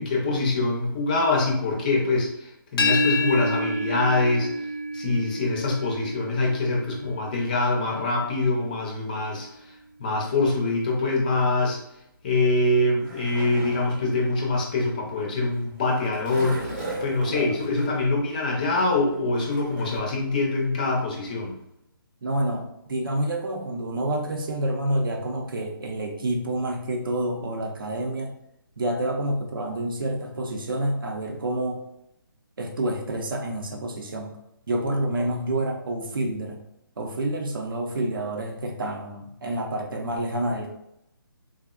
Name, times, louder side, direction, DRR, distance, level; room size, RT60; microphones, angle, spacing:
voice 1, 0.0-4.5 4.9-9.5 10.0-11.8 12.2-16.7 17.0-21.6, left 2 dB, 20° left, -1 dB, 0.4 m, -24 dB
sound 1, 2.8-8.5, left 1 dB, 80° left, 0.6 m, -29 dB
Skateboard, 12.5-20.0, right 2 dB, 30° right, 0.8 m, -39 dB
voice 2, 17.3-17.6 22.2-28.3 28.8-31.8 32.6-34.4 34.7-36.6 37.0-40.7, right 1 dB, 70° right, 2 dB, 0.6 m, -28 dB
3.4 x 2.0 x 2.3 m, 0.81 s
hypercardioid pair, 165°, 12 cm